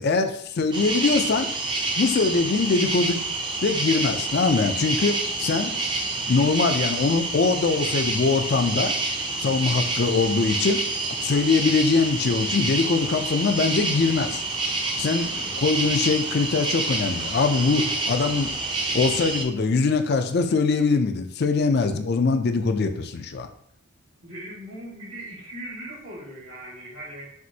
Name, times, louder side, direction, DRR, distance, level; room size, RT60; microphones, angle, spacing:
voice 1, 0.0-1.5 2.0-3.2 3.6-5.7 6.3-8.9 9.4-10.8 11.2-14.4 15.0-18.5 18.9-23.5, left 4 dB, 50° left, 8 dB, 0.4 m, -22 dB
sound 1, 0.7-19.4, right 2 dB, 20° right, 0.5 m, -28 dB
voice 2, 24.2-27.3, right 1 dB, 70° right, -4 dB, 1.7 m, -39 dB
6.0 x 2.6 x 2.7 m, 0.71 s
head